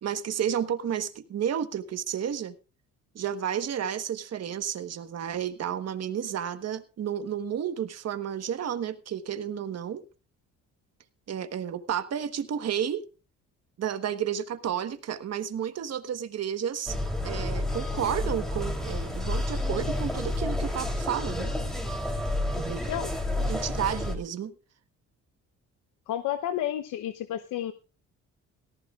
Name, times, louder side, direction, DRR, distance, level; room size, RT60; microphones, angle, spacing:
voice 1, 0.0-2.5 3.1-10.0 11.3-13.0 13.8-17.0 17.2-21.5 22.5-22.9 23.5-24.5, right 9 dB, 55° right, 10 dB, 1.3 m, -31 dB
sound 1, 16.9-24.1, left 1 dB, ahead, 3.2 m, -30 dB
voice 2, 26.1-27.7, left 11 dB, 85° left, 9 dB, 0.9 m, -31 dB
17.5 x 15.0 x 2.4 m, 0.32 s
cardioid pair, 90°, 30 cm